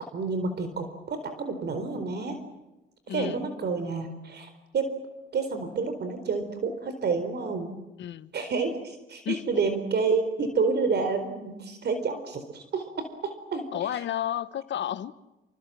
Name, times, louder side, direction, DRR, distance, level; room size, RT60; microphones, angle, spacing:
voice 1, 0.1-2.4 3.1-4.9 5.3-7.8 8.3-13.7 13.9-14.0, right 4 dB, 55° right, 4.3 m, -29 dB
voice 2, 3.1-3.4 8.0-8.3 9.2-9.5 13.7-15.1, left 10 dB, 65° left, 1.3 m, -31 dB
28.5 x 26.0 x 7.7 m
cardioid pair, 90°, 20 cm